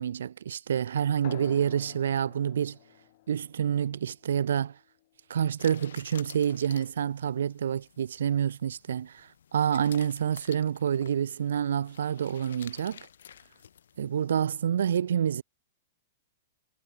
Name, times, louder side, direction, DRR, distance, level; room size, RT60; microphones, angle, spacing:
voice 1, 0.0-2.8 3.3-4.7 5.3-13.0 14.0-15.4, right 8 dB, 85° right, 0.3 m, -28 dB
sound 1, 1.2-6.3, left 17 dB, 45° left, 1.4 m, -51 dB
sound 2, 5.6-14.3, left 9 dB, 85° left, 2.2 m, -51 dB
hypercardioid pair, 170°, 0 cm